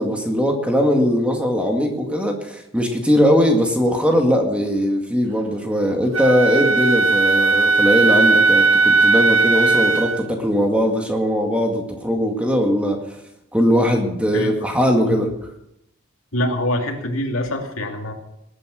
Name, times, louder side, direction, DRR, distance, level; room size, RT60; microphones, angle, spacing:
voice 1, 0.0-13.2 13.5-15.3, equal, 5° right, 2 dB, 2.0 m, -20 dB
Wind instrument woodwind instrument, 6.1-10.2, right 3 dB, 70° right, 0.9 m, -17 dB
voice 2, 14.3-14.7 15.1-15.2 16.3-18.1, left 1 dB, 75° left, 3 dB, 2.8 m, -24 dB
19.5 x 9.8 x 6.4 m, 0.81 s
head